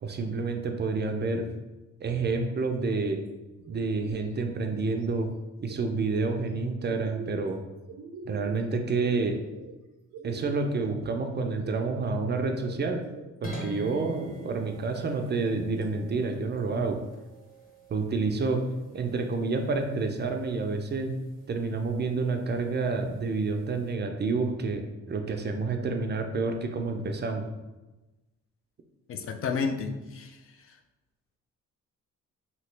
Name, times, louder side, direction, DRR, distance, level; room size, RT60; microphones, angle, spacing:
voice 1, 0.0-1.5 2.0-3.2 3.7-5.3 5.6-7.6 8.2-9.4 10.2-13.0 13.4-17.0 17.9-18.6 18.9-21.1 21.5-27.5, right 3 dB, 35° right, 4 dB, 0.4 m, -29 dB
sound 1, 2.7-3.2 3.6-4.3 4.6-5.3 5.7-6.4 6.8-7.5 7.9-8.7 9.0-9.7 10.1-10.9 11.3-12.1 12.6-13.3 13.9-14.7, right 4 dB, 90° right, 0.6 m, -44 dB
sound 2, 13.4-23.9, equal, 30° left, 1.1 m, -48 dB
voice 2, 29.1-30.4, left 5 dB, 50° left, 6 dB, 0.4 m, -31 dB
2.9 x 2.7 x 3.2 m, 1.1 s
cardioid pair, 90°, 30 cm